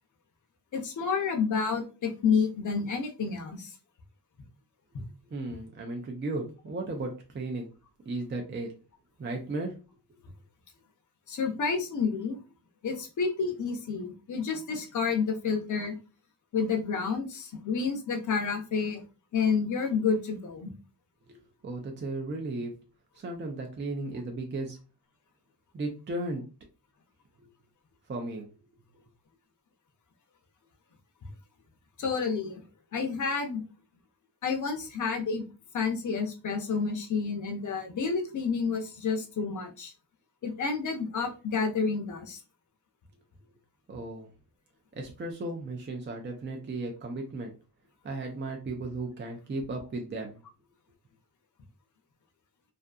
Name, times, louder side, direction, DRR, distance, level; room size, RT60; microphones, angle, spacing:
voice 1, 0.7-3.7 11.3-12.4 12.8-15.9 16.5-19.0 19.3-20.7 32.0-32.6 32.9-33.6 34.4-35.4 35.7-39.9 40.4-42.4, left 5 dB, 50° left, 2 dB, 0.6 m, -29 dB
voice 2, 5.3-7.7 8.1-8.7 9.2-9.7 21.3-21.4 21.6-22.7 23.2-24.8 25.7-26.4 28.1-28.5 43.9-44.3 45.0-47.5 48.0-50.4, right 2 dB, 30° right, 2 dB, 0.4 m, -35 dB
2.6 x 2.5 x 2.3 m, 0.32 s
wide cardioid pair, 145°, 40 cm